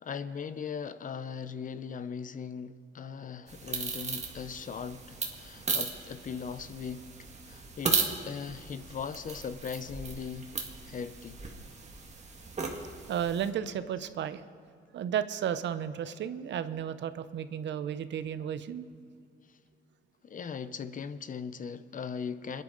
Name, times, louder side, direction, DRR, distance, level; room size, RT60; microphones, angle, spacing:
voice 1, 0.0-7.0 7.5-10.5 10.9-11.4 20.2-22.6, left 6 dB, 40° left, 14 dB, 0.7 m, -39 dB
sound 1, 3.5-13.5, right 4 dB, 35° right, 1.9 m, -36 dB
voice 2, 13.1-14.4 14.9-18.9, right 9 dB, 65° right, 13 dB, 0.7 m, -33 dB
25.0 x 10.5 x 3.9 m, 2.3 s
cardioid pair, 90°, 20 cm